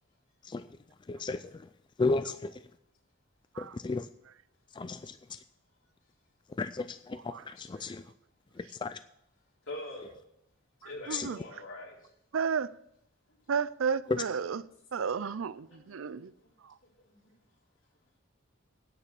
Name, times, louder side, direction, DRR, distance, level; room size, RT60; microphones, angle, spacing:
voice 1, 1.1-1.4 2.0-2.5 3.6-4.1 4.8-5.1 6.6-8.0 8.8-9.0 11.1-11.3, left 3 dB, 25° left, 12 dB, 0.3 m, -33 dB
voice 2, 7.1-7.5 11.1-11.4 12.3-12.7 13.5-14.6 14.9-16.3 16.6-16.7, right 6 dB, 85° right, 17 dB, 0.5 m, -32 dB
voice 3, 9.7-10.1 10.8-12.0 15.7-16.2 17.1-17.3, left 1 dB, 75° left, -3 dB, 4.1 m, -44 dB
9.7 x 8.4 x 7.0 m, 0.78 s
head